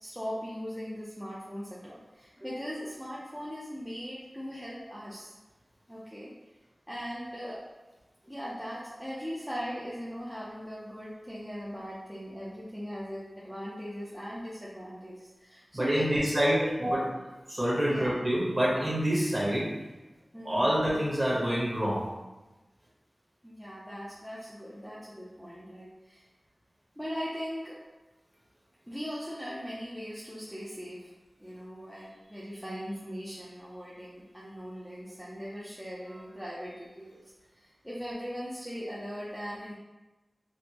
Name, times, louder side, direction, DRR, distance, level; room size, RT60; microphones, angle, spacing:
voice 1, 0.0-5.3 5.9-6.3 6.9-7.6 8.2-17.0 17.9-18.1 20.3-20.8 23.4-26.2 27.0-27.8 28.9-31.1 31.4-37.2 37.5-39.7, equal, 5° right, -8 dB, 0.5 m, -39 dB
voice 2, 15.7-16.6 17.5-19.7 20.4-22.0, equal, 25° right, -6 dB, 1.1 m, -26 dB
3.4 x 2.1 x 2.9 m, 1.1 s
wide cardioid pair, 80°, 0 cm